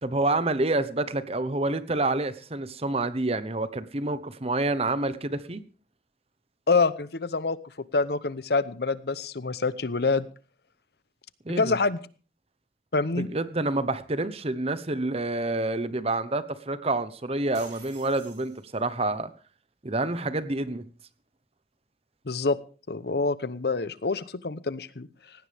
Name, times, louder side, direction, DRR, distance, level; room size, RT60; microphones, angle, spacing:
voice 1, 0.0-5.6 11.5-11.7 13.2-19.3 19.8-20.8, right 2 dB, 35° right, 13 dB, 1.1 m, -28 dB
voice 2, 6.7-7.6 7.9-10.3 11.6-12.0 12.9-13.3 22.3-22.6 22.9-25.1, left 4 dB, 65° left, 16 dB, 0.9 m, -26 dB
sound 1, 17.5-19.0, right 4 dB, 85° right, 7.4 m, -50 dB
18.5 x 16.5 x 3.5 m, 0.38 s
head